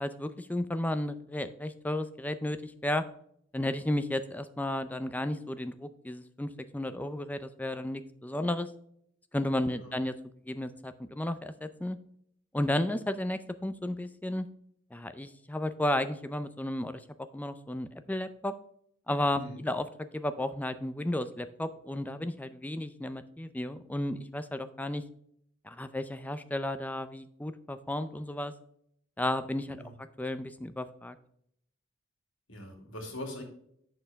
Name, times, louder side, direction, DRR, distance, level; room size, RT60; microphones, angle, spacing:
voice 1, 0.0-3.0 3.5-8.7 9.3-10.1 10.4-12.0 12.5-14.5 14.9-17.0 17.3-18.5 19.1-25.0 25.6-28.5 29.2-29.8 30.2-31.2, left 1 dB, 10° left, 11 dB, 0.5 m, -33 dB
voice 2, 32.5-33.4, left 1 dB, 70° left, 2 dB, 2.4 m, -42 dB
7.8 x 6.7 x 3.5 m, 0.70 s
head